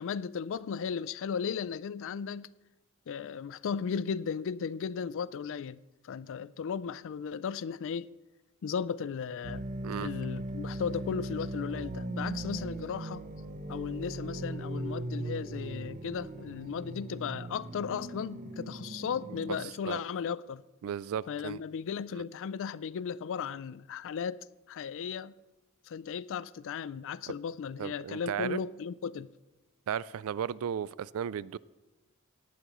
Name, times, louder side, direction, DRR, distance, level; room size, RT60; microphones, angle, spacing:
voice 1, 0.0-2.5 3.1-8.1 8.6-9.6 10.0-13.2 13.7-20.6 21.3-25.3 25.9-29.3, left 6 dB, 60° left, 0.4 m, -36 dB
sound 1, 9.4-19.7, right 1 dB, 35° right, 0.7 m, -39 dB
voice 2, 20.8-21.6 22.1-22.2 27.8-28.6 29.9-31.6, right 8 dB, 70° right, 0.3 m, -35 dB
18.0 x 11.5 x 3.1 m
head